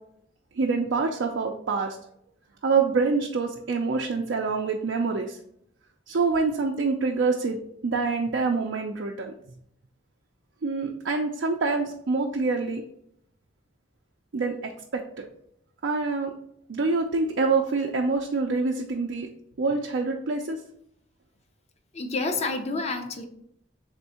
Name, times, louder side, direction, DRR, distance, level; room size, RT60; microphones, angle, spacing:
voice 1, 0.5-2.0 2.6-5.4 6.1-7.6 7.8-9.3 10.6-12.8 14.3-15.3 15.8-16.3 16.7-19.3 19.6-20.6, right 4 dB, 70° right, 1 dB, 0.5 m, -26 dB
voice 2, 21.9-23.3, left 3 dB, 35° left, 6 dB, 0.6 m, -29 dB
3.7 x 3.5 x 4.2 m, 0.71 s
head